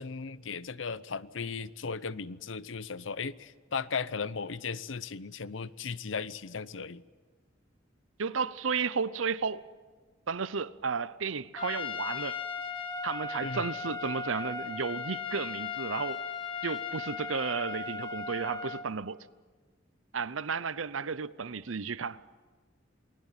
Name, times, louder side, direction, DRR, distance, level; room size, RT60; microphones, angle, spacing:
voice 1, 0.0-7.0 13.4-13.7, left 5 dB, 70° left, 0.7 m, -36 dB
voice 2, 8.2-9.7 10.3-12.4 13.0-16.2 16.6-19.2 20.1-22.2, right 5 dB, 85° right, 0.8 m, -33 dB
Trumpet, 11.6-18.9, left 5 dB, 25° left, 1.9 m, -37 dB
28.0 x 20.5 x 9.1 m
head